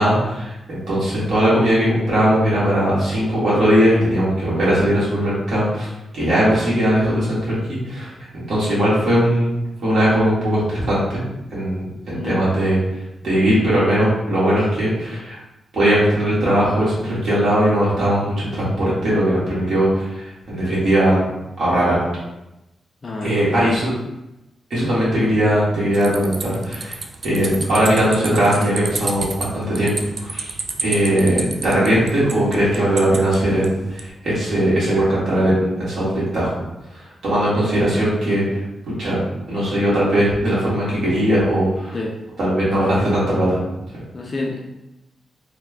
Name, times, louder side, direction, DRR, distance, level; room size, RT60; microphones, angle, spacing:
voice 1, 0.0-5.9 6.1-8.1 8.5-9.5 9.8-11.2 11.5-12.8 13.2-15.4 15.7-21.3 21.6-22.0 23.2-23.9 24.7-26.9 27.2-29.3 29.5-29.9 30.2-30.5 30.8-36.5 37.2-38.6 39.0-39.2 39.5-41.9 42.4-43.6, equal, 60° right, -9 dB, 1.4 m, -19 dB
voice 2, 12.1-12.4 23.0-23.6 24.7-24.9 41.9-42.2 43.0-43.1 44.1-44.6, left 2 dB, 35° left, -2 dB, 0.4 m, -28 dB
sound 1, 25.9-34.1, right 3 dB, 45° right, 0.3 m, -31 dB
3.2 x 2.2 x 3.3 m, 0.94 s
wide cardioid pair, 125°, 0 cm